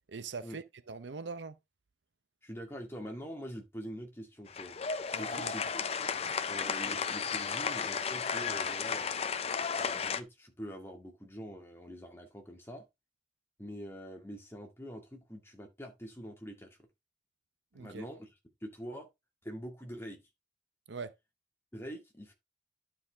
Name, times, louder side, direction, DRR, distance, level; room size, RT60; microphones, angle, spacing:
voice 1, 0.1-1.6 5.1-5.5 17.7-18.1 20.9-21.1, right 4 dB, 75° right, 0.7 m, -42 dB
voice 2, 2.4-4.8 5.2-6.1 6.5-9.2 9.8-12.9 13.6-16.8 17.7-18.3 18.6-19.1 19.4-20.2 21.7-22.3, equal, 15° left, 1.9 m, -44 dB
sound 1, 4.5-10.2, left 6 dB, 35° left, 0.5 m, -34 dB
11.5 x 4.9 x 3.5 m
head